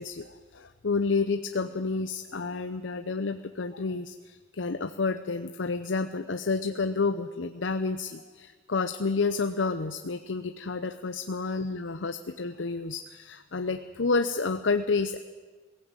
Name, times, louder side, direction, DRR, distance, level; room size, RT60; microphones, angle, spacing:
voice 1, 0.0-15.2, left 4 dB, 90° left, 9 dB, 0.7 m, -30 dB
21.5 x 15.5 x 8.9 m, 1.4 s
head